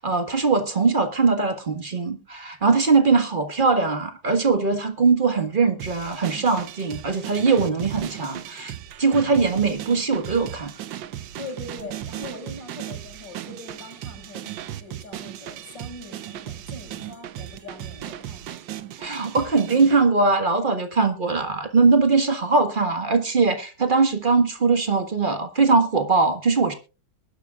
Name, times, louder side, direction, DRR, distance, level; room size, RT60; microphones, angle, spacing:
voice 1, 0.0-8.7 9.0-10.7 19.0-26.7, right 4 dB, 30° right, 7 dB, 1.6 m, -21 dB
sound 1, 5.8-20.0, right 11 dB, 85° right, 1.5 m, -37 dB
voice 2, 11.4-18.6, left 2 dB, 80° left, 3 dB, 6.1 m, -41 dB
22.0 x 12.0 x 2.4 m, 0.32 s
omnidirectional pair, 2.0 m